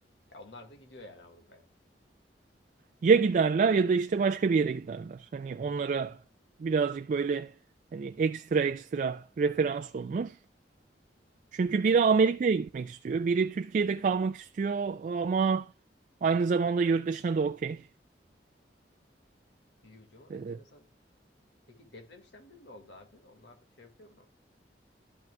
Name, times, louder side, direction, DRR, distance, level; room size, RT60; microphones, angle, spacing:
voice 1, 0.3-1.7 11.6-11.9 19.8-20.9 21.7-24.3, left 2 dB, 85° left, 1.8 m, -52 dB
voice 2, 3.0-6.2 6.6-7.5 7.9-10.4 11.5-15.7 16.2-17.9 20.3-20.6, right 5 dB, 45° right, 0.3 m, -27 dB
12.0 x 5.9 x 2.2 m
head